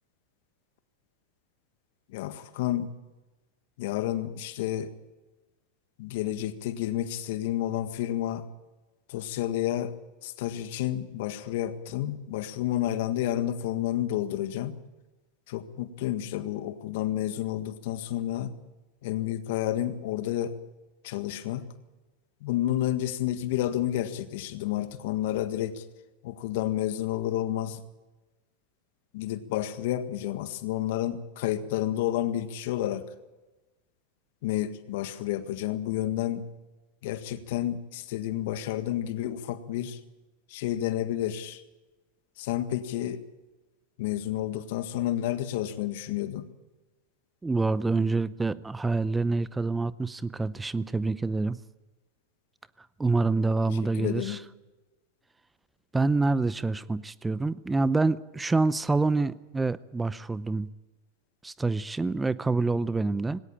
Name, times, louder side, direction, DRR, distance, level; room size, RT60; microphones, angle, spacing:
voice 1, 2.1-2.9 3.8-4.9 6.0-8.4 9.1-10.0 10.2-14.7 15.5-18.5 19.0-20.6 21.0-21.6 22.4-25.8 26.2-27.8 29.1-33.1 34.4-36.5 37.0-40.0 40.5-41.6 42.4-43.2 44.0-46.5 53.7-54.4, left 12 dB, 65° left, 11 dB, 1.7 m, -30 dB
voice 2, 47.4-51.6 53.0-54.4 55.9-60.7 61.4-63.4, right 3 dB, 10° right, 18 dB, 0.7 m, -27 dB
20.0 x 17.5 x 8.9 m, 1.2 s
hypercardioid pair, 95°, 0 cm